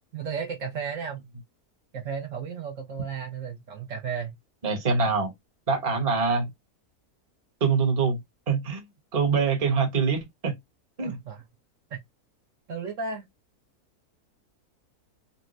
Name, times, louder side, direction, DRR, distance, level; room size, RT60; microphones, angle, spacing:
voice 1, 0.1-1.2 1.9-4.3 11.0-11.4 11.9-12.0 12.7-13.3, right 6 dB, 65° right, 1.0 m, -34 dB
voice 2, 4.6-5.3 5.7-6.5 7.6-8.2 8.5-8.8 9.1-10.6 11.0-11.2, right 5 dB, 30° right, 0.9 m, -24 dB
4.0 x 2.2 x 2.5 m
omnidirectional pair, 1.6 m